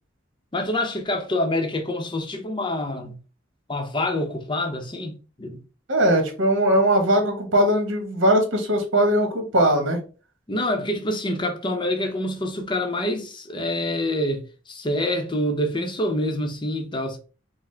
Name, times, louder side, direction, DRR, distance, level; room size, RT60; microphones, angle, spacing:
voice 1, 0.5-3.2 3.7-5.6 10.5-17.2, left 1 dB, 25° left, 0.7 m, -26 dB
voice 2, 5.9-10.0, right 1 dB, 80° right, 1.2 m, -20 dB
4.8 x 2.1 x 3.3 m
head